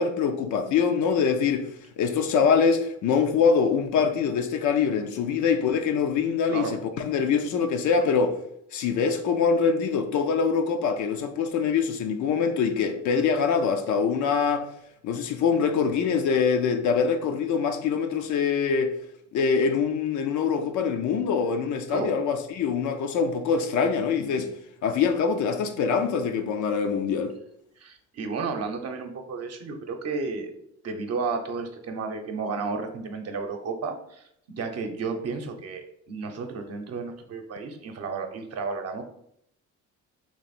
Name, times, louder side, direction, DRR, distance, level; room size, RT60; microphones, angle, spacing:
voice 1, 0.0-1.7 2.0-8.4 8.7-14.7 15.0-19.0 19.3-24.5 24.8-27.3, left 6 dB, 65° left, 0.6 m, -24 dB
voice 2, 27.8-30.6 30.8-39.0, right 4 dB, 50° right, 0.8 m, -32 dB
3.2 x 3.0 x 4.2 m
supercardioid pair, 75°, 32 cm